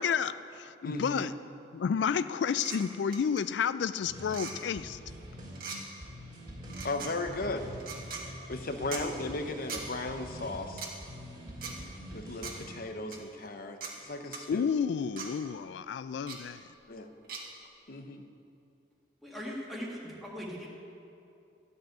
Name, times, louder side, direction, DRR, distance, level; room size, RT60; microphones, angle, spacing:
voice 1, 0.0-1.3 1.7-5.0 14.5-16.7, left 7 dB, 75° left, 14 dB, 0.3 m, -31 dB
voice 2, 0.8-1.3 6.8-7.7 8.5-10.9 12.1-14.7 16.9-17.1 17.9-18.2, left 2 dB, 55° left, 7 dB, 0.8 m, -36 dB
sound 1, 2.5-2.8 3.1-3.4 4.3-4.5 5.6-5.8 6.7-7.1 7.8-8.2 8.9-9.0 9.7-9.8 10.7-10.9 11.6-11.7 12.4-12.5 13.1-13.2 13.8-13.9 14.3-14.4 15.2-15.3 16.3-16.4 17.3-17.4, right 5 dB, 55° right, 1.7 m, -39 dB
sound 2, 4.1-12.8, equal, 25° right, 2.6 m, -45 dB
voice 3, 19.2-20.7, equal, ahead, -5 dB, 1.9 m, -39 dB
13.0 x 5.5 x 8.9 m, 2.7 s
head